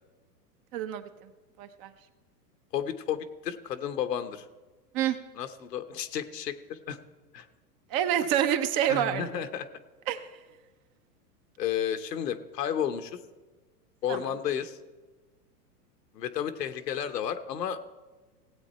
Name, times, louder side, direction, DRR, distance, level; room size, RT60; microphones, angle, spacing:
voice 1, 0.7-1.1 1.6-1.9 4.9-5.2 7.9-9.4 10.1-10.2 14.1-14.2, right 10 dB, 45° right, 9 dB, 1.0 m, -27 dB
voice 2, 2.7-4.4 5.4-7.0 7.3-7.5 8.9-9.7 11.6-13.2 14.0-14.8 16.1-17.8, left 9 dB, 85° left, 10 dB, 1.1 m, -32 dB
17.0 x 8.5 x 4.3 m, 1.2 s
hypercardioid pair, 120°, 48 cm